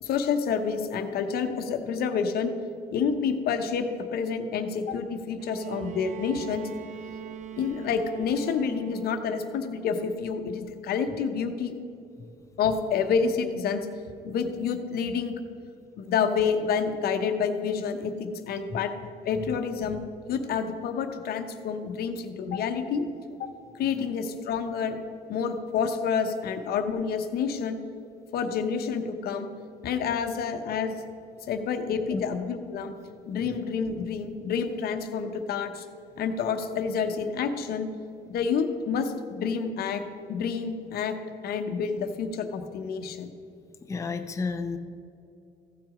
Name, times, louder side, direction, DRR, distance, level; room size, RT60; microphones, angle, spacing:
voice 1, 0.0-2.5 2.9-6.7 7.6-11.7 12.6-13.8 14.2-15.3 16.0-18.9 19.2-20.0 20.3-23.0 23.4-23.5 23.8-25.0 25.3-27.8 28.3-29.5 29.8-31.1 31.5-32.9 33.3-35.8 36.2-37.9 38.3-41.2 41.4-43.3, left 6 dB, 65° left, 7 dB, 0.9 m, -28 dB
Bowed string instrument, 5.4-9.4 10.7-10.8, right 9 dB, 45° right, 0.7 m, -41 dB
voice 2, 43.9-44.8, left 4 dB, 20° left, 6 dB, 0.5 m, -31 dB
15.0 x 6.0 x 4.9 m, 2.6 s
cardioid pair, 110°, 17 cm